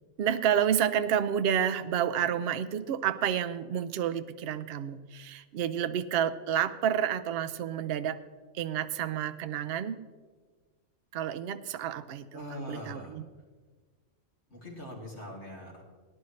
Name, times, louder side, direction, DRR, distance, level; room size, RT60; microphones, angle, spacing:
voice 1, 0.2-8.2 8.5-10.0 11.1-13.2, right 9 dB, 60° right, 12 dB, 0.7 m, -30 dB
voice 2, 12.3-13.2 14.5-15.8, left 1 dB, 60° left, -2 dB, 2.8 m, -42 dB
18.5 x 10.5 x 3.2 m, 1.4 s
omnidirectional pair, 1.3 m